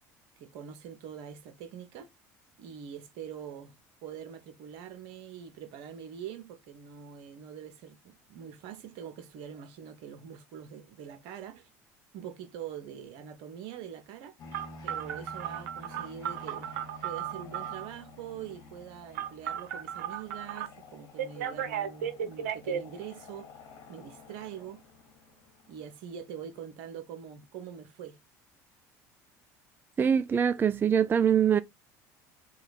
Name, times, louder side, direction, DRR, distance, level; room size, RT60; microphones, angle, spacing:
voice 1, 0.4-2.1 2.6-11.7 12.1-14.3 14.8-16.7 17.0-23.5 23.9-24.8 25.7-28.2, right 8 dB, 70° right, 1.2 m, -44 dB
sound 1, 14.4-26.5, left 2 dB, 50° left, 1.7 m, -50 dB
Telephone, 14.5-17.9 19.1-20.7 21.2-22.8, right 9 dB, 85° right, 0.8 m, -35 dB
voice 2, 30.0-31.6, right 8 dB, 25° right, 0.4 m, -23 dB
3.2 x 3.1 x 4.0 m
hypercardioid pair, 80°, 9 cm